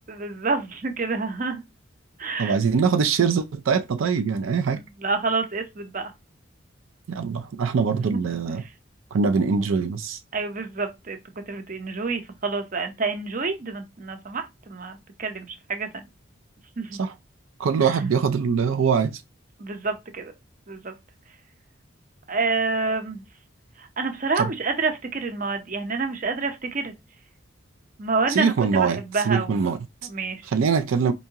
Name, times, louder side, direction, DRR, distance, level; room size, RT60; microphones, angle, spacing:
voice 1, 0.1-1.6 2.2-2.6 5.0-6.1 8.1-8.2 10.3-11.2 11.5-16.0 16.8-17.0 17.8-18.0 19.6-20.3 20.7-20.9 22.3-23.2 23.8-26.9 28.0-30.4, right 4 dB, 40° right, 0.6 m, -28 dB
voice 2, 2.4-4.8 7.1-8.6 9.1-10.2 17.0-17.1 17.6-19.2 24.4-24.5 28.3-29.0 29.2-29.8 30.4-31.1, right 5 dB, 85° right, 0.4 m, -23 dB
4.6 x 2.7 x 2.8 m
head